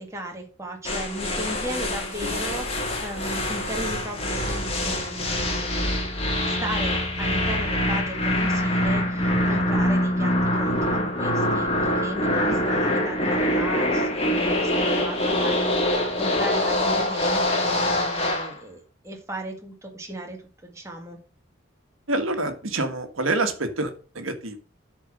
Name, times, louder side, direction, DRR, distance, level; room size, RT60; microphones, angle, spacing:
voice 1, 0.0-6.1 6.5-20.4 20.6-21.2, right 1 dB, 15° right, 1.9 m, -36 dB
sound 1, 0.8-18.5, left 1 dB, 30° left, 2.1 m, -24 dB
voice 2, 22.1-24.6, right 2 dB, 80° right, 1.5 m, -27 dB
10.0 x 4.5 x 6.4 m
head